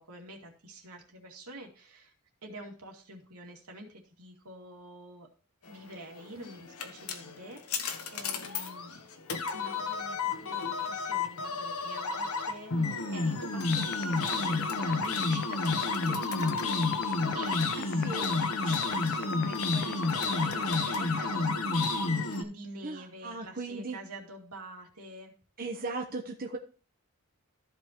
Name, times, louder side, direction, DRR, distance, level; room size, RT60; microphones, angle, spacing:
voice 1, 0.0-2.1 2.4-5.3 5.7-9.1 9.5-18.2 18.6-25.3, right 2 dB, 85° right, 1 dB, 2.5 m, -47 dB
sound 1, 6.2-22.4, left 3 dB, 75° left, 1.2 m, -30 dB
sound 2, 13.7-21.3, left 9 dB, 55° left, 0.5 m, -37 dB
voice 2, 17.8-18.3 22.8-24.0 25.6-26.6, right 3 dB, 40° right, 2 dB, 1.0 m, -37 dB
14.5 x 5.4 x 3.1 m, 0.38 s
head